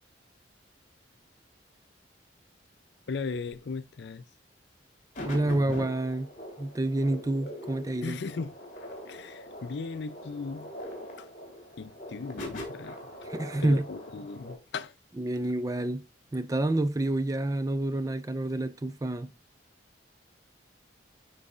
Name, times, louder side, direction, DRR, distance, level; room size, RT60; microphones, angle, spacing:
voice 1, 3.1-4.2 8.0-8.5 9.1-10.7 11.2-11.3 11.8-13.0 13.6-14.9, left 4 dB, 60° left, 0.4 m, -37 dB
sound 1, 5.1-14.6, left 1 dB, 40° left, 2.3 m, -42 dB
voice 2, 5.2-6.3 6.6-8.2 13.3-13.9 15.2-16.1 16.3-19.3, right 1 dB, 20° right, 0.3 m, -28 dB
10.5 x 4.0 x 2.4 m
head